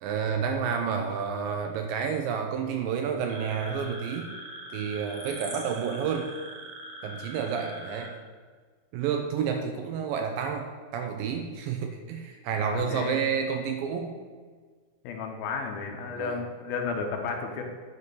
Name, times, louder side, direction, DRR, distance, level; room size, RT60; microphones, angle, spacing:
voice 1, 0.0-4.3 4.7-6.3 7.0-8.2 8.9-14.2 16.2-16.4, right 6 dB, 80° right, 4 dB, 2.2 m, -30 dB
sound 1, 3.3-8.1, right 1 dB, 45° right, 1.5 m, -42 dB
voice 2, 12.6-13.2 15.0-17.6, left 5 dB, 80° left, 3 dB, 2.6 m, -33 dB
9.8 x 4.3 x 6.7 m, 1.5 s
omnidirectional pair, 4.5 m